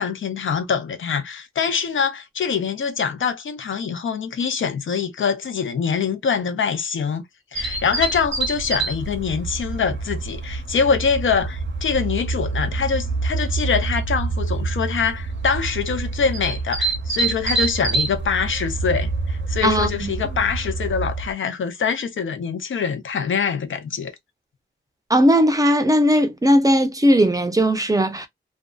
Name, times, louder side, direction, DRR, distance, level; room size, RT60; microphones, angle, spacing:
voice 1, 0.0-7.2 7.5-24.1, left 6 dB, 75° left, 0.6 m, -24 dB
sound 1, 7.6-21.3, right 3 dB, 65° right, 0.6 m, -26 dB
voice 2, 19.6-20.1 25.1-28.3, equal, 15° right, 0.5 m, -17 dB
2.5 x 2.2 x 2.3 m
wide cardioid pair, 100°, 20 cm